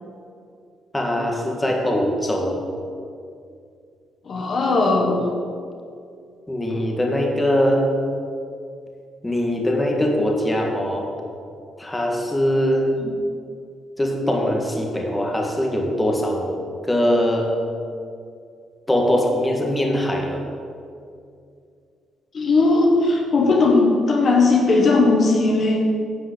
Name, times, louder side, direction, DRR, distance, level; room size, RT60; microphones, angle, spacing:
voice 1, 0.9-2.6 6.5-8.0 9.2-11.1 11.8-12.9 14.0-16.6 16.8-17.5 18.9-20.4, equal, 15° left, 0 dB, 1.8 m, -21 dB
voice 2, 4.2-5.2 13.0-13.1 22.3-25.9, left 3 dB, 50° left, 1 dB, 1.5 m, -18 dB
10.5 x 5.7 x 8.5 m, 2.4 s
cardioid pair, 90°, 0 cm